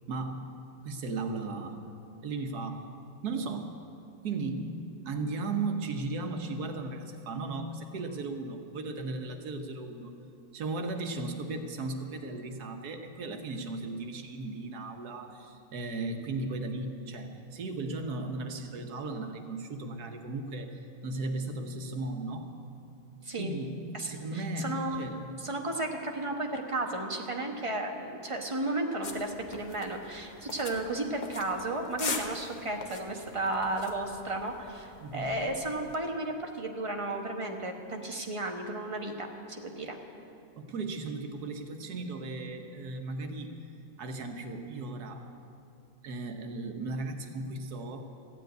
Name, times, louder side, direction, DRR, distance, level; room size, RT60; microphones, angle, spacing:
voice 1, 0.1-0.5 0.8-1.8 2.2-2.8 3.2-3.7 4.2-10.2 10.5-22.5 23.4-25.3 35.0-35.3 40.5-43.6 44.0-45.3 46.0-48.0, right 3 dB, 80° right, 5 dB, 1.6 m, -36 dB
voice 2, 23.9-25.1 25.4-40.0, right 2 dB, 25° right, 2 dB, 1.1 m, -34 dB
sound 1, 29.0-36.0, left 4 dB, 40° left, 0.7 m, -42 dB
14.5 x 7.6 x 9.2 m, 2.6 s
omnidirectional pair, 1.6 m